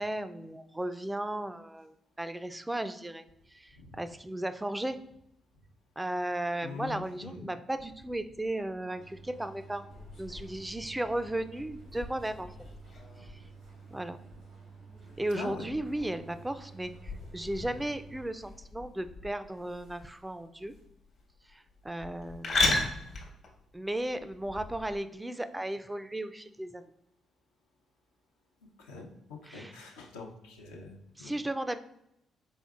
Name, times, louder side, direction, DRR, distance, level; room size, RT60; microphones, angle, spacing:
voice 1, 0.0-5.0 6.0-9.9 10.2-12.5 13.2-13.4 13.9-14.2 15.2-20.8 21.5-23.2 23.7-26.9 29.5-29.7 31.2-31.8, right 1 dB, 15° right, 11 dB, 0.3 m, -35 dB
voice 2, 6.6-7.5 15.3-15.7 28.8-31.3, left 4 dB, 90° left, 0 dB, 0.6 m, -43 dB
sound 1, 8.9-18.3, right 5 dB, 90° right, 1.4 m, -51 dB
sound 2, 9.9-25.0, left 3 dB, 65° left, 1.0 m, -38 dB
4.4 x 3.8 x 2.4 m, 0.81 s
hypercardioid pair, 45°, 0 cm